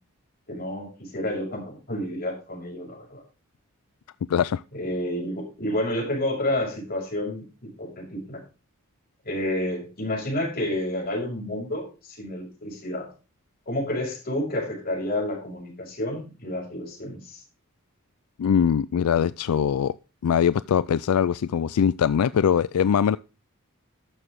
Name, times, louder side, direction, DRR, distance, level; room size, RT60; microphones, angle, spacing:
voice 1, 0.5-3.2 4.7-8.4 9.2-13.1 13.7-17.4, left 1 dB, 45° left, 6.3 m, -30 dB
voice 2, 4.3-4.6 18.4-20.0 20.2-23.2, left 8 dB, 85° left, 0.4 m, -22 dB
12.5 x 6.9 x 3.6 m
head